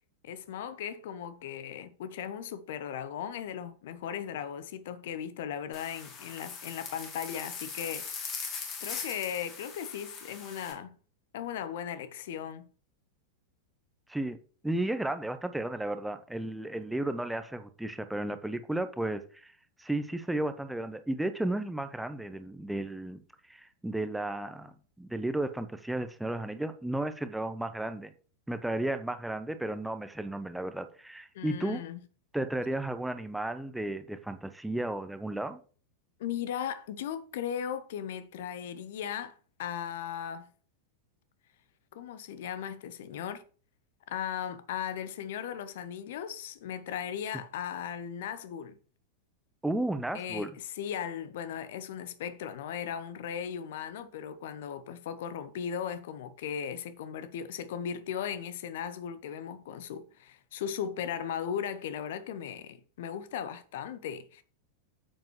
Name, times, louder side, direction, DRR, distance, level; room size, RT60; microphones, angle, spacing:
voice 1, 0.2-8.1 8.8-10.9 11.3-12.7 31.3-32.0 36.2-39.3 39.6-40.5 41.9-43.4 44.1-48.8 50.1-64.4, left 8 dB, 55° left, 0.8 m, -37 dB
sound 1, 5.7-10.7, left 5 dB, 35° left, 2.7 m, -40 dB
voice 2, 14.6-19.5 19.8-23.2 23.5-28.1 28.5-31.8 32.3-35.6 49.6-50.5, right 1 dB, 5° right, 0.7 m, -33 dB
9.0 x 7.5 x 3.1 m
figure-of-eight pair, 90°, 0 cm